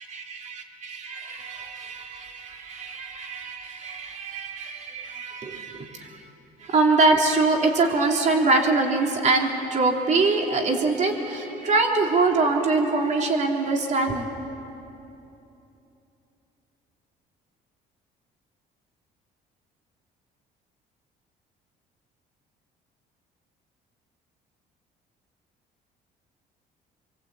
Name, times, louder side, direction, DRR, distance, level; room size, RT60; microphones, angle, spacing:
voice 1, 0.0-6.3 6.6-14.3, right 3 dB, 45° right, 1 dB, 3.4 m, -24 dB
27.5 x 23.5 x 8.6 m, 2.9 s
cardioid pair, 110°, 17 cm